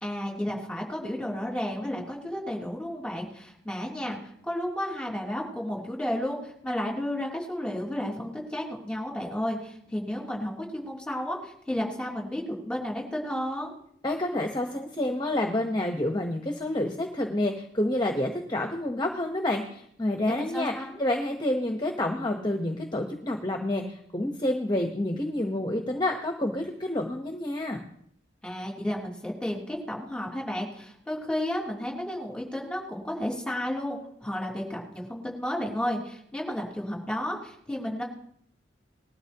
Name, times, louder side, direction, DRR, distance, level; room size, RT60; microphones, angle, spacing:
voice 1, 0.0-13.7 20.2-21.0 28.4-38.0, left 1 dB, 5° left, -2 dB, 3.1 m, -32 dB
voice 2, 14.0-20.7 21.0-27.8, left 1 dB, 25° left, 3 dB, 1.1 m, -28 dB
20.0 x 12.5 x 3.0 m, 0.69 s
head